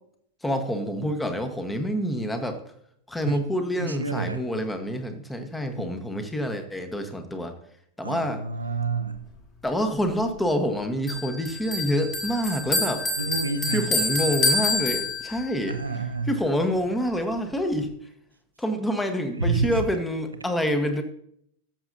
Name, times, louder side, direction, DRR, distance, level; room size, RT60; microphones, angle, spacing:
voice 1, 0.4-2.6 3.1-7.5 8.0-8.4 9.6-13.1 13.7-15.8 16.3-17.9 18.6-21.0, equal, 5° left, 7 dB, 1.2 m, -27 dB
voice 2, 3.8-4.5 8.0-9.2 13.2-13.9 15.7-16.3 19.4-19.7, right 4 dB, 80° right, 9 dB, 0.7 m, -28 dB
Bell, 11.1-15.6, left 2 dB, 30° left, 2.5 m, -27 dB
13.5 x 7.1 x 2.7 m, 0.68 s
figure-of-eight pair, 90°, 0 cm